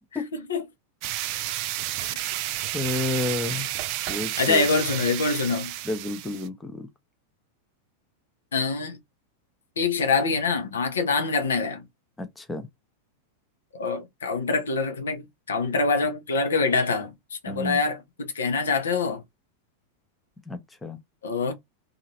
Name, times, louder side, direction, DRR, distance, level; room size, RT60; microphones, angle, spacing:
sound 1, 1.0-6.5, right 15 dB, 45° right, 0.3 m, -31 dB
voice 1, 2.7-3.7 4.1-4.6 5.8-6.9 12.2-12.7 17.5-17.8 20.5-21.0, left 2 dB, 10° left, 0.6 m, -30 dB
voice 2, 4.4-5.7 8.5-9.0 9.8-11.8 13.7-19.2 21.2-21.5, left 4 dB, 65° left, 0.7 m, -25 dB
2.8 x 2.5 x 2.8 m
figure-of-eight pair, 90°, 0 cm